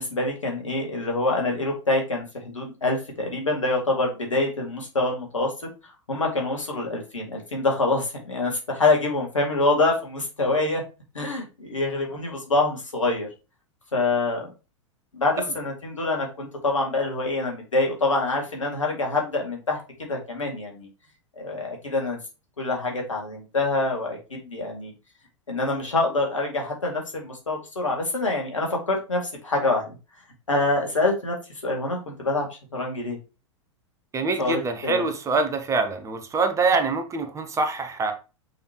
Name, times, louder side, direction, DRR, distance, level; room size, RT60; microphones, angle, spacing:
voice 1, 0.0-5.5 6.1-10.8 11.1-13.3 13.9-14.4 15.1-20.9 21.4-22.2 22.6-24.9 25.5-30.0 30.5-31.3 31.6-32.5 32.7-33.2 34.4-35.0, left 2 dB, 80° left, 1 dB, 2.2 m, -25 dB
voice 2, 34.1-38.1, right 4 dB, 20° right, 7 dB, 1.0 m, -25 dB
6.5 x 5.3 x 2.9 m, 0.30 s
figure-of-eight pair, 95°, 16 cm